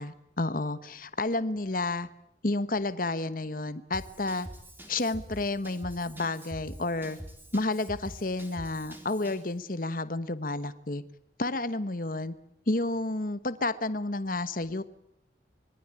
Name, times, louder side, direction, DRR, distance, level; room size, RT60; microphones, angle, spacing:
voice 1, 0.0-2.1 2.4-4.5 4.9-7.2 7.5-11.0 11.4-12.3 12.7-14.8, left 2 dB, 45° left, 13 dB, 1.1 m, -31 dB
Drum kit / Drum, 3.9-9.5, equal, 10° right, 3.8 m, -45 dB
25.0 x 22.5 x 8.9 m, 0.76 s
head